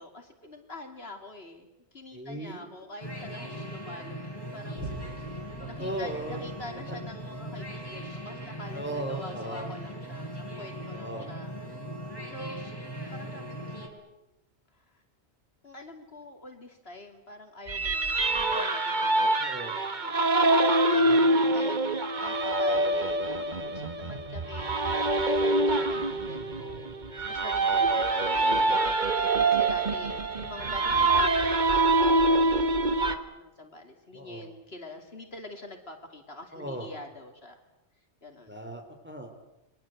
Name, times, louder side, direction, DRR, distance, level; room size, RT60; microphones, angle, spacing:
voice 1, 0.0-4.2 4.5-4.8 5.8-11.5 12.3-12.8 13.1-14.1 14.7-15.0 15.6-19.5 20.0-26.9 27.2-29.0 29.5-37.6 38.2-38.5, left 2 dB, 60° left, 4 dB, 3.1 m, -45 dB
voice 2, 2.1-2.7 5.6-6.4 6.9-7.0 8.7-9.7 10.9-11.3 19.4-20.1 20.9-21.3 29.4-30.0 34.1-34.5 36.5-36.9 38.5-39.3, right 1 dB, 10° right, 4 dB, 4.0 m, -38 dB
sound 1, 3.0-13.9, equal, 20° left, 4.7 m, -39 dB
Boom, 4.8-11.7 12.2-12.3, right 1 dB, 75° right, 4.7 m, -48 dB
sound 2, 17.7-33.2, right 2 dB, 40° right, 1.6 m, -25 dB
29.5 x 22.5 x 8.0 m, 0.91 s
omnidirectional pair, 1.2 m